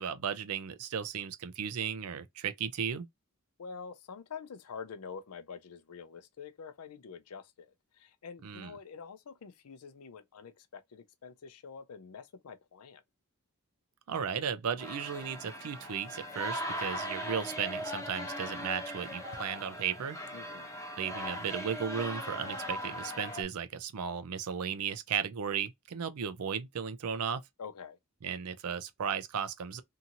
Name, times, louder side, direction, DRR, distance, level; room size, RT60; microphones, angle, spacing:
voice 1, 0.0-3.1 8.4-8.7 14.1-20.2 21.0-27.4 28.2-29.8, right 7 dB, 80° right, 0.5 m, -35 dB
voice 2, 3.6-13.0 20.3-20.7 27.6-28.0, left 6 dB, 85° left, 0.5 m, -46 dB
sound 1, 14.8-23.4, equal, 15° left, 0.8 m, -39 dB
2.8 x 2.5 x 2.7 m
head